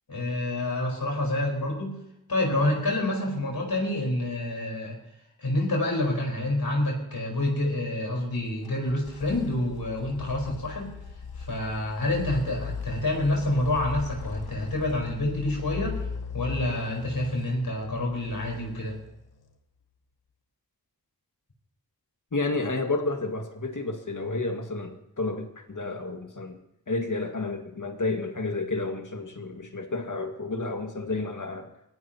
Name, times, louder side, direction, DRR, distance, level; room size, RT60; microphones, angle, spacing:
voice 1, 0.1-2.0 2.3-5.0 5.4-10.9 11.4-16.0 16.3-18.9, left 1 dB, 70° left, -1 dB, 4.5 m, -28 dB
sound 1, 8.6-19.4, left 5 dB, 90° left, 1.0 m, -38 dB
voice 2, 22.3-26.6 26.9-31.7, left 3 dB, 55° left, 4 dB, 2.0 m, -31 dB
25.0 x 16.0 x 2.9 m, 0.85 s
cardioid pair, 45°, 37 cm